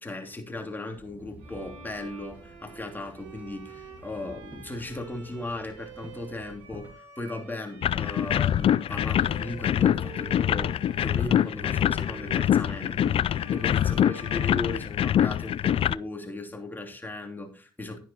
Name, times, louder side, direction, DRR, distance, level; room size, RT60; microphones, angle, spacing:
voice 1, 0.0-18.0, left 2 dB, 15° left, 2 dB, 2.9 m, -37 dB
Walk footsteps / Chatter / Hiss, 1.0-6.9, right 1 dB, 15° right, 1.9 m, -51 dB
Bowed string instrument, 1.4-15.5, right 5 dB, 85° right, 4.5 m, -48 dB
sound 1, 7.8-16.0, left 10 dB, 55° left, 0.4 m, -25 dB
10.5 x 10.0 x 2.9 m, 0.40 s
supercardioid pair, 60°, 11 cm